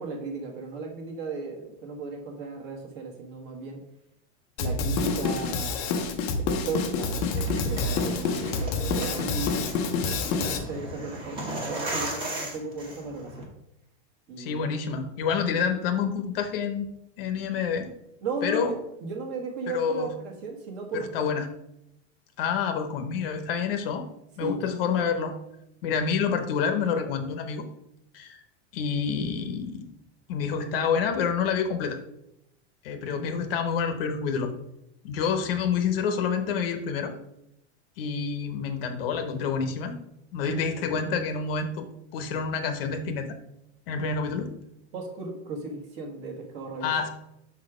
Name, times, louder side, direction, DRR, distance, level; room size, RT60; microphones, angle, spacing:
voice 1, 0.0-3.8 4.6-6.0 6.6-9.6 10.1-13.5 14.3-14.7 18.2-21.1 24.4-24.6 44.9-46.9, right 3 dB, 35° right, 2 dB, 1.3 m, -35 dB
Drum kit, 4.6-10.6, left 4 dB, 25° left, 0.5 m, -28 dB
sound 1, 7.3-13.4, right 1 dB, 15° right, 0.9 m, -36 dB
voice 2, 14.4-16.9 17.2-17.9 18.4-18.7 19.7-20.1 20.9-21.5 22.4-24.0 24.4-25.3 25.8-27.6 28.1-28.4 28.7-29.9 30.3-32.0 32.8-34.5 35.0-37.1 38.0-39.9 40.3-41.9 42.1-43.3 43.9-44.5 46.8-47.1, left 6 dB, 55° left, 7 dB, 0.8 m, -28 dB
6.0 x 4.1 x 4.8 m, 0.82 s
supercardioid pair, 175°, 36 cm